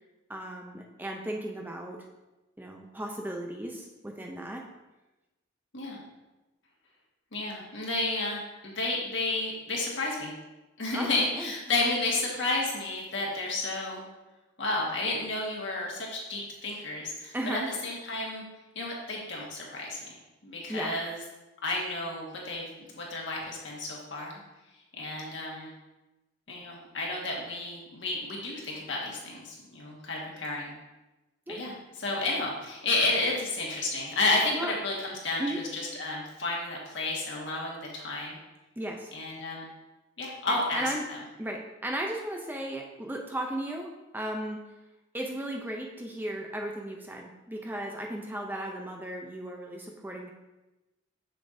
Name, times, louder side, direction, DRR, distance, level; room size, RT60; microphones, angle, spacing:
voice 1, 0.3-2.0 2.6-4.6 10.9-11.5 17.3-17.7 20.7-21.0 31.5-31.6 34.5-34.7 35.4-35.6 38.8-39.1 40.5-41.0 41.4-44.6 45.1-50.3, right 1 dB, 10° right, 1 dB, 0.5 m, -35 dB
voice 2, 7.3-10.3 10.8-14.0 14.6-18.4 18.8-20.2 20.4-21.2 21.6-24.4 24.9-25.7 26.5-30.7 31.5-38.4 39.1-39.7 40.2-41.2, left 2 dB, 65° left, -3 dB, 1.6 m, -31 dB
7.2 x 6.8 x 2.6 m, 1.0 s
head